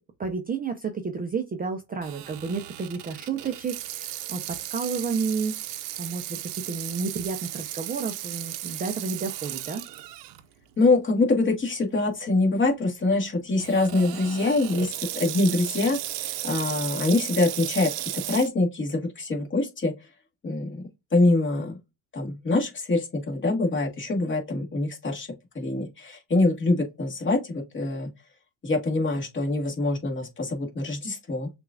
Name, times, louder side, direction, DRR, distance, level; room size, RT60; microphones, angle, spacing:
voice 1, 0.2-9.8, right 5 dB, 20° right, 0.6 m, -31 dB
Water tap faucet / Sink (filling or washing), 2.0-10.4 10.9-11.0 11.7-12.0 13.6-18.5, right 14 dB, 70° right, 0.8 m, -35 dB
voice 2, 10.8-16.0 16.4-17.9 18.3-19.9 20.4-20.8 21.1-21.7 22.1-25.3 25.5-28.1 28.6-31.5, left 2 dB, 25° left, 1.6 m, -24 dB
6.3 x 2.5 x 2.4 m
cardioid pair, 120°, 45 cm